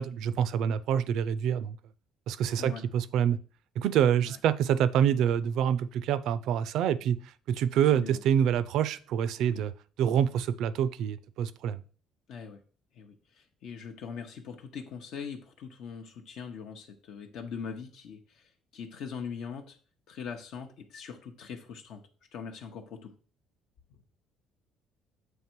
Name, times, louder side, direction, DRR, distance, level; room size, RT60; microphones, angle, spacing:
voice 1, 0.0-1.8 2.3-3.4 3.8-7.2 7.5-9.7 10.0-11.8, right 9 dB, 70° right, 16 dB, 0.4 m, -26 dB
voice 2, 12.3-12.6 12.9-19.8 20.1-22.0 22.3-23.1, left 6 dB, 65° left, 4 dB, 0.7 m, -41 dB
7.4 x 3.3 x 4.5 m, 0.40 s
cardioid pair, 130°, 0 cm